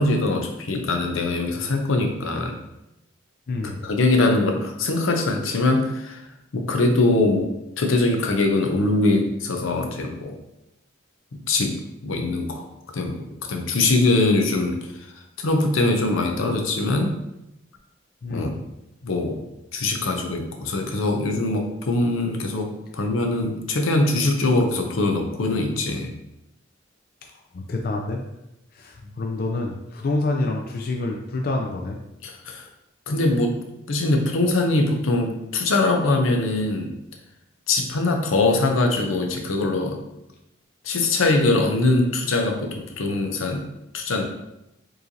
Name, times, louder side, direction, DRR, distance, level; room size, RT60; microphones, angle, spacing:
voice 1, 0.0-2.6 3.8-6.2 6.5-7.5 7.8-10.3 11.5-11.8 12.0-12.7 12.9-14.8 15.4-17.1 18.3-18.5 19.0-19.4 19.7-26.1 32.2-32.7 33.1-33.6 33.9-36.9 37.7-40.0 40.8-43.6 43.9-44.2, left 2 dB, 85° left, 3 dB, 0.6 m, -22 dB
voice 2, 3.5-3.8 18.2-18.5 27.5-28.2 28.7-32.0, left 2 dB, 50° left, 2 dB, 0.4 m, -27 dB
4.6 x 3.1 x 2.7 m, 0.89 s
head